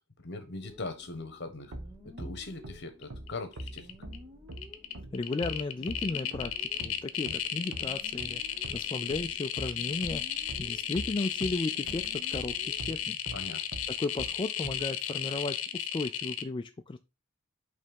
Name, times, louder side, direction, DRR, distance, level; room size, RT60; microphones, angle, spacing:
voice 1, 0.2-1.7 2.0-3.9 13.3-13.6, left 3 dB, 55° left, 1.2 m, -40 dB
sound 1, 0.6-13.1, left 1 dB, 15° right, 1.2 m, -54 dB
sound 2, 1.7-11.6 11.9-14.9, right 1 dB, 85° right, 1.1 m, -42 dB
sound 3, 3.0-3.3 3.5-4.2 4.5-16.4, left 10 dB, 80° left, 0.7 m, -34 dB
voice 2, 5.1-10.2 10.6-13.2 13.9-17.0, left 3 dB, 25° left, 0.3 m, -35 dB
5.4 x 3.4 x 5.2 m
head